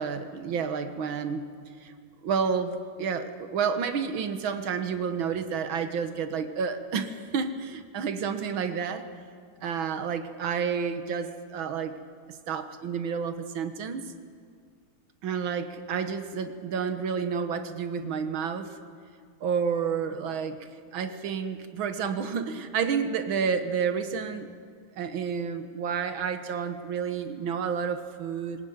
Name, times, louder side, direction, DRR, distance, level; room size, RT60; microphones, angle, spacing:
voice 1, 0.0-1.4 1.8-1.9 2.2-9.0 9.6-12.0 12.5-14.1 15.2-18.7 19.4-24.5 25.0-28.6, right 6 dB, 85° right, 9 dB, 2.0 m, -30 dB
21.0 x 19.0 x 9.4 m, 2.1 s
omnidirectional pair, 2.1 m